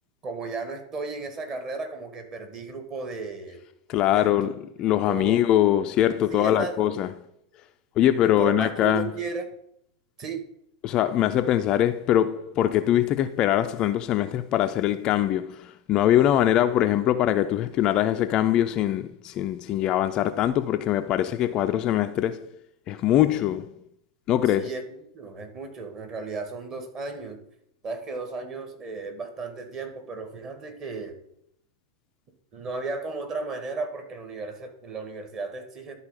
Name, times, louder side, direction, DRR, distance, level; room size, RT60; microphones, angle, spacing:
voice 1, 0.2-3.6 4.1-5.4 6.3-7.0 8.2-9.5 10.2-10.4 24.5-27.4 27.8-31.2 32.5-35.9, right 3 dB, 30° right, 1.8 m, -35 dB
voice 2, 3.9-7.1 8.0-9.1 10.8-22.5 22.9-23.7 24.3-24.7, left 12 dB, 35° left, 0.4 m, -23 dB
11.5 x 4.1 x 5.5 m
figure-of-eight pair, 90°, 2 cm